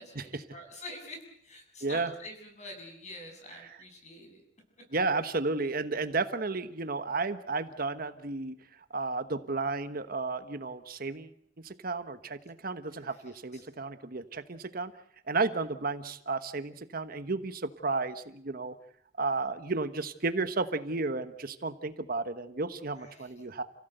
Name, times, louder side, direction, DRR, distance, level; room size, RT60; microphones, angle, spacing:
voice 1, 0.0-4.4 13.1-13.6 23.0-23.4, left 1 dB, 40° left, 4 dB, 7.2 m, -47 dB
voice 2, 4.9-8.5 8.9-11.3 11.6-14.9 15.3-18.7 19.2-23.6, right 3 dB, 50° right, 10 dB, 1.2 m, -33 dB
29.0 x 16.5 x 8.0 m, 0.69 s
head